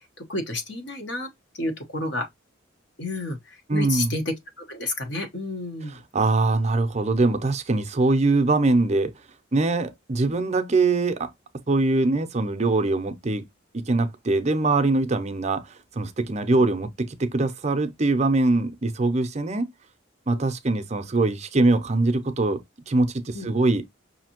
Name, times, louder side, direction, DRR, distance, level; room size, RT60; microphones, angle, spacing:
voice 1, 0.0-2.3 3.0-6.0 16.5-16.6 23.3-23.5, left 2 dB, 60° left, 1.2 m, -31 dB
voice 2, 3.7-4.1 6.1-9.1 9.5-11.3 11.7-13.4 13.7-19.7 20.3-22.6 22.9-23.8, right 2 dB, 35° right, 0.5 m, -22 dB
5.7 x 2.7 x 2.9 m
head